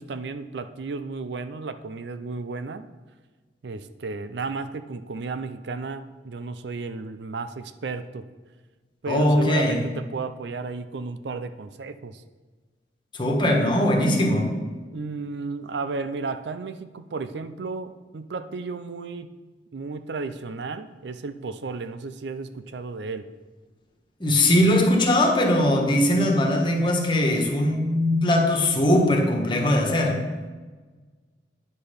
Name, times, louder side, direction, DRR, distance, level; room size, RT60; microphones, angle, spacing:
voice 1, 0.0-2.9 3.6-8.2 9.0-12.2 14.8-19.3 19.7-23.3, right 4 dB, 75° right, 11 dB, 0.5 m, -33 dB
voice 2, 9.1-9.8 13.1-14.5 24.2-30.2, left 1 dB, 25° left, 1 dB, 1.4 m, -20 dB
9.7 x 6.6 x 5.2 m, 1.3 s
head